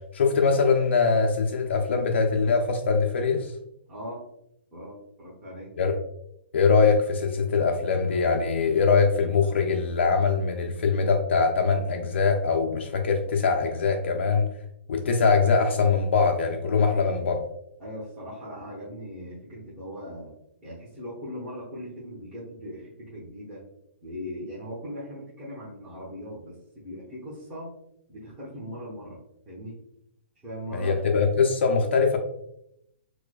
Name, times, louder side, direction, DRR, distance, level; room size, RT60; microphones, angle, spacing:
voice 1, 0.1-3.5 5.8-5.9 6.5-14.4 14.9-17.3 30.7-32.2, left 5 dB, 70° left, 2 dB, 0.4 m, -22 dB
voice 2, 3.9-4.2 4.7-5.7 16.8-17.1 17.8-20.3 20.6-23.6 24.0-27.7 28.1-29.2 29.5-29.8 30.4-30.9, equal, 20° right, -8 dB, 1.0 m, -39 dB
4.5 x 2.1 x 2.3 m, 0.78 s
hypercardioid pair, 150°, 7 cm